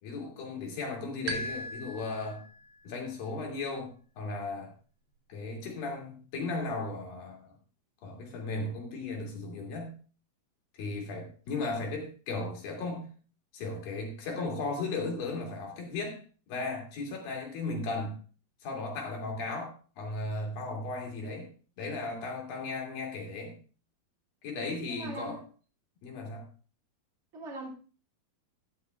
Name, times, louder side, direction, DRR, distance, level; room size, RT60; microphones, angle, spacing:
voice 1, 0.0-2.4 2.8-4.7 5.3-7.5 8.0-10.0 10.7-13.1 13.5-16.2 16.5-18.2 18.6-21.5 21.8-23.6 24.4-25.4 26.0-26.5, left 3 dB, 65° left, 4.3 m, -36 dB
sound 1, 1.3-2.8, right 1 dB, 65° right, 2.6 m, -38 dB
voice 2, 24.9-25.4 27.3-27.7, right 2 dB, 25° right, 2.7 m, -40 dB
12.5 x 12.5 x 2.4 m
omnidirectional pair, 4.5 m